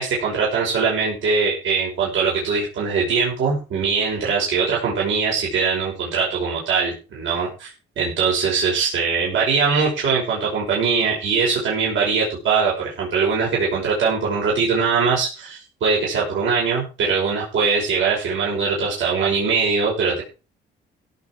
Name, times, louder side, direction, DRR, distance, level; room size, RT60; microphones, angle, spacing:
voice 1, 0.0-7.7 8.0-20.2, right 5 dB, 75° right, -4 dB, 6.0 m, -21 dB
17.0 x 8.1 x 4.7 m, 0.33 s
cardioid pair, 90°, 20 cm